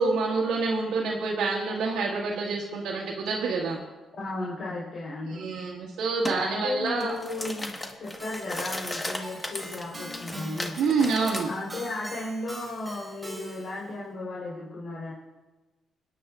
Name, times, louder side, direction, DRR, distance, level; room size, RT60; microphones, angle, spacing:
voice 1, 0.0-3.8 5.3-7.1 10.8-11.5, right 4 dB, 85° right, -4 dB, 1.8 m, -27 dB
voice 2, 4.2-5.4 6.3-7.7 8.0-10.7 11.4-15.1, left 2 dB, 55° left, -6 dB, 3.8 m, -34 dB
sound 1, 6.2-6.4 6.9-11.4, left 1 dB, 20° left, 1.4 m, -36 dB
Keyboard (musical), 8.2-13.9, right 1 dB, 10° right, 3.9 m, -42 dB
23.0 x 10.0 x 2.5 m, 1.1 s
cardioid pair, 90°, 0 cm